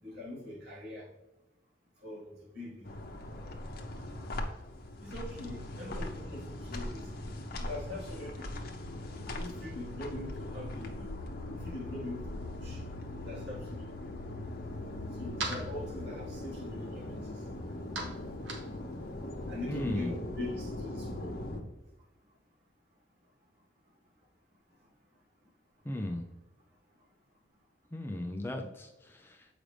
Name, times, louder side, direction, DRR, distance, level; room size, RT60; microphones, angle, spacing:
voice 1, 0.0-1.1 2.0-2.9 3.8-3.9 5.0-7.2 7.6-8.7 9.4-11.1 11.5-12.8 13.2-14.3 15.1-17.5 19.5-21.3, left 1 dB, 55° right, -3 dB, 1.9 m, -42 dB
sound 1, 2.8-21.6, left 1 dB, 50° left, 0.8 m, -40 dB
sound 2, 14.5-20.2, right 3 dB, 75° right, 1.3 m, -45 dB
voice 2, 19.7-20.1 25.9-26.2 27.9-29.5, left 1 dB, 10° left, 2 dB, 0.4 m, -36 dB
7.5 x 5.0 x 3.4 m, 0.98 s
head